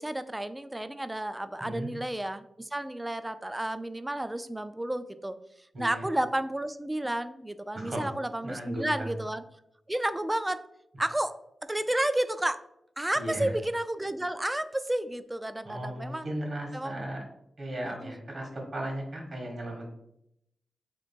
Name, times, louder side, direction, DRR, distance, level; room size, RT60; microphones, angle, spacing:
voice 1, 0.0-5.3 5.8-9.4 9.9-10.7 11.0-12.6 13.0-16.2 16.7-17.0, right 1 dB, 15° right, 12 dB, 0.3 m, -31 dB
voice 2, 1.6-1.9 5.7-6.1 7.7-8.2 8.4-9.2 13.1-13.5 15.6-17.2 17.6-19.9, right 1 dB, 60° right, 0 dB, 1.4 m, -36 dB
3.3 x 2.9 x 4.3 m, 0.78 s
cardioid pair, 55°, 0 cm